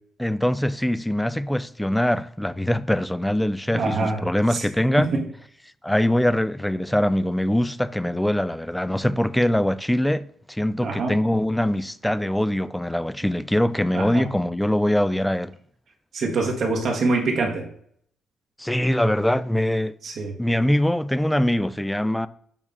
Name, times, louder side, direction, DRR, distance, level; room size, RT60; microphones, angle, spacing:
voice 1, 0.2-5.1 5.8-15.5 18.6-19.9 20.4-22.3, left 1 dB, 5° left, 0.3 m, -23 dB
voice 2, 3.7-4.7 5.0-5.3 10.8-11.2 13.9-14.3 16.1-17.7 20.0-20.3, right 3 dB, 60° right, 1.1 m, -25 dB
7.1 x 2.4 x 5.3 m
cardioid pair, 90°, 0 cm